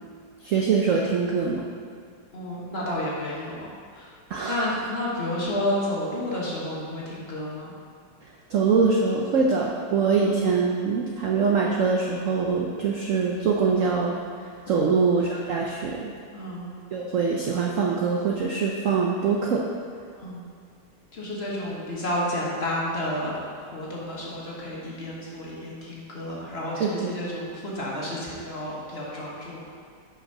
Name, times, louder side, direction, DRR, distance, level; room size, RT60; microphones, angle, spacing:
voice 1, 0.4-1.6 4.3-4.6 8.5-16.1 16.9-19.6 26.8-27.2, right 5 dB, 65° right, -1 dB, 0.8 m, -23 dB
voice 2, 2.3-4.1 4.5-7.7 14.7-14.9 16.3-16.7 20.1-20.4 21.1-23.4 23.7-29.6, left 1 dB, 40° left, -5 dB, 1.3 m, -31 dB
5.9 x 5.5 x 5.3 m, 2.1 s
omnidirectional pair, 2.0 m